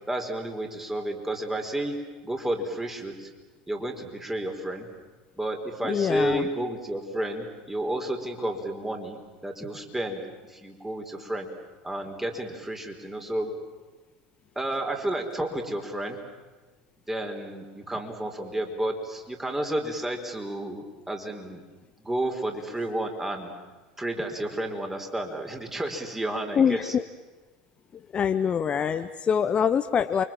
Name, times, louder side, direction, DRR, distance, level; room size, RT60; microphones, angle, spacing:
voice 1, 0.1-3.3 3.7-4.9 5.4-11.5 11.8-13.6 14.6-16.2 17.1-21.6 22.0-23.5 24.0-27.0, right 1 dB, 10° right, 3 dB, 4.3 m, -31 dB
voice 2, 5.8-6.5 26.6-27.0 28.1-30.2, left 7 dB, 30° left, 10 dB, 0.9 m, -24 dB
29.5 x 24.5 x 7.6 m, 1.3 s
figure-of-eight pair, 80°, 4 cm